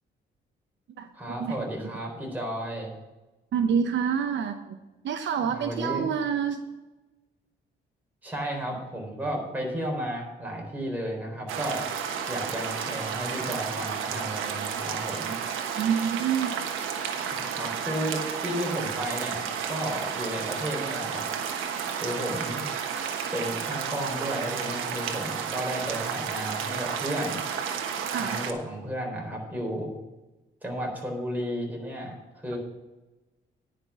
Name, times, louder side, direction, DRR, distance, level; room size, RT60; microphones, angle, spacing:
voice 1, 1.2-2.9 5.4-6.1 8.2-11.8 12.3-15.3 17.3-21.2 22.0-22.6 23.3-27.4 28.2-29.9 30.6-32.6, equal, 10° right, -1 dB, 4.2 m, -33 dB
voice 2, 3.5-4.8 5.0-6.6 15.3-15.4 15.7-16.6 17.8-18.1 28.1-28.4, right 7 dB, 70° right, 7 dB, 0.9 m, -27 dB
sound 1, 11.5-28.5, right 7 dB, 90° right, 1.2 m, -32 dB
9.9 x 5.9 x 8.1 m, 1.1 s
cardioid pair, 90°, 20 cm